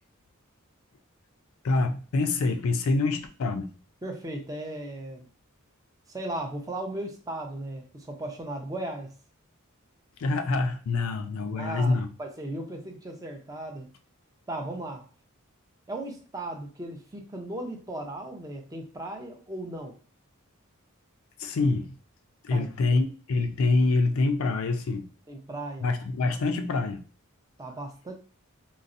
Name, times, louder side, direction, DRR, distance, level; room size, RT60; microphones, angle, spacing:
voice 1, 1.6-3.7 10.2-12.1 21.4-22.0 22.4-25.1 25.8-27.0, left 3 dB, 70° left, 0.4 m, -26 dB
voice 2, 4.0-5.3 6.1-9.1 11.6-13.9 14.5-15.0 15.9-20.0 22.5-23.0 25.3-25.9 27.6-28.1, right 1 dB, 15° right, 0.5 m, -36 dB
3.9 x 2.0 x 2.5 m
head